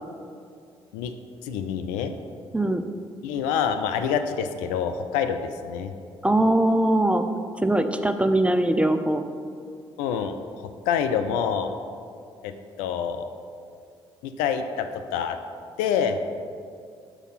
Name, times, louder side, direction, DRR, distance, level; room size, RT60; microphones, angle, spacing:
voice 1, 1.4-2.1 3.2-5.9 10.0-11.7 12.4-13.3 14.2-15.4 15.8-16.2, left 7 dB, 75° left, 8 dB, 0.4 m, -27 dB
voice 2, 6.2-7.3 7.6-9.2, right 1 dB, 10° right, 8 dB, 0.5 m, -21 dB
6.6 x 4.7 x 5.6 m, 2.3 s
hypercardioid pair, 45°, 13 cm